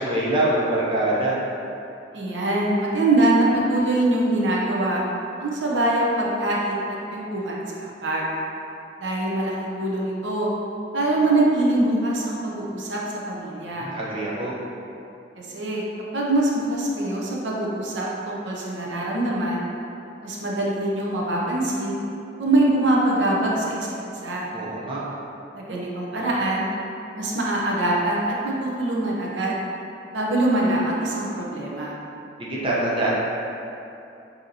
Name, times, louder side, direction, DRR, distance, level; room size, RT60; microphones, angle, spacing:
voice 1, 0.0-1.4 13.7-14.5 24.5-25.0 32.4-33.1, right 1 dB, 30° right, -6 dB, 0.7 m, -24 dB
voice 2, 2.1-5.0 5.4-6.8 7.1-8.3 9.0-10.5 10.9-13.0 13.3-13.9 15.4-15.8 16.1-19.7 20.2-22.0 22.4-23.9 24.2-24.5 25.6-26.7 27.2-29.6 30.1-32.0, right 1 dB, 80° right, -4 dB, 0.7 m, -23 dB
6.4 x 2.8 x 2.8 m, 2.8 s
head